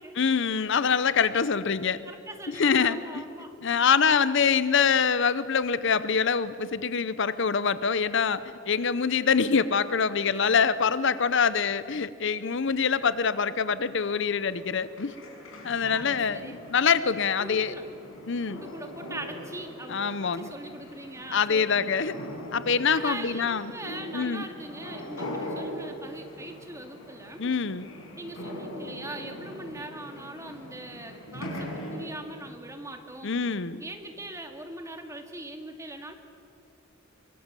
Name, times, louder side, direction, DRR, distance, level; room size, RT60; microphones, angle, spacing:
voice 1, 0.2-2.0 2.5-3.2 3.6-15.1 15.6-17.8 18.3-18.6 19.9-20.5 21.3-22.1 22.5-23.7 24.1-24.4 27.4-27.9 33.2-33.8, left 6 dB, 65° left, 15 dB, 0.7 m, -25 dB
voice 2, 2.1-3.5 10.2-10.6 15.8-16.6 17.4-17.8 18.5-22.0 22.9-27.5 28.1-33.4 33.8-36.2, right 1 dB, 15° right, 4 dB, 2.2 m, -41 dB
sound 1, 13.9-32.1, equal, 85° left, 5.8 m, -41 dB
24.5 x 24.0 x 7.6 m, 2.6 s
head